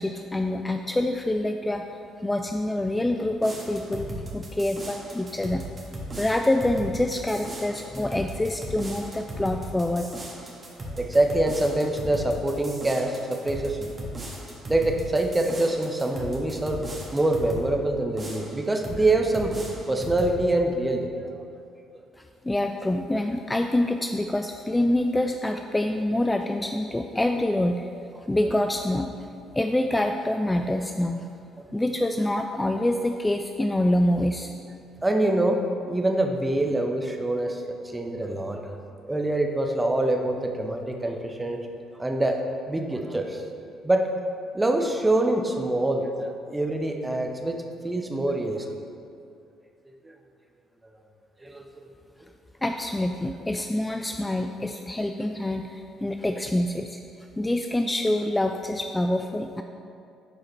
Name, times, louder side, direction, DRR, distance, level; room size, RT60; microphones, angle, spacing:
voice 1, 0.0-5.7 6.2-10.1 22.4-27.9 28.3-29.1 29.5-31.3 31.7-34.5 52.6-59.6, left 1 dB, 15° left, 5 dB, 0.3 m, -26 dB
sound 1, 3.4-17.7 18.2-19.0 19.3-20.4, right 1 dB, 30° right, 1.4 m, -37 dB
voice 2, 10.9-13.9 14.7-19.5 19.9-21.1 35.0-35.6 35.9-37.6 37.9-38.8 39.1-41.6 42.0-42.4 42.7-43.4 43.8-44.0 44.5-47.6 47.8-48.7 51.4-51.6, right 2 dB, 15° right, 3 dB, 0.8 m, -25 dB
10.0 x 4.8 x 3.1 m, 2.5 s
figure-of-eight pair, 45°, 0 cm